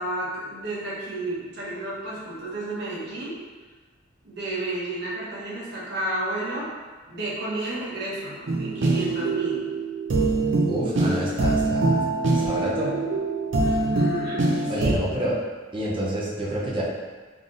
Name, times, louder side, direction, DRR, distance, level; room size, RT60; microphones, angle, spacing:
voice 1, 0.0-3.4 4.2-6.7 7.1-9.6 13.6-15.1, right 1 dB, 60° right, -7 dB, 1.1 m, -32 dB
sound 1, 8.5-14.9, right 2 dB, 75° right, 0.6 m, -24 dB
voice 2, 10.7-12.0 12.3-13.0 14.7-15.4 15.7-16.8, right 1 dB, 25° right, -5 dB, 0.6 m, -28 dB
3.8 x 3.5 x 2.5 m, 1.4 s
head